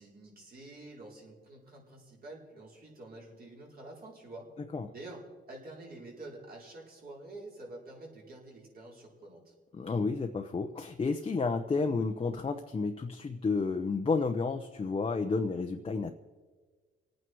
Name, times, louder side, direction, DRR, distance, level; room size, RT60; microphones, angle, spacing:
voice 1, 0.0-4.5 4.9-5.2 5.5-9.5, right 2 dB, 50° right, -2 dB, 4.9 m, -48 dB
voice 2, 9.7-16.1, left 4 dB, 30° left, 4 dB, 0.9 m, -31 dB
26.5 x 9.2 x 4.7 m, 1.4 s
cardioid pair, 90°, 20 cm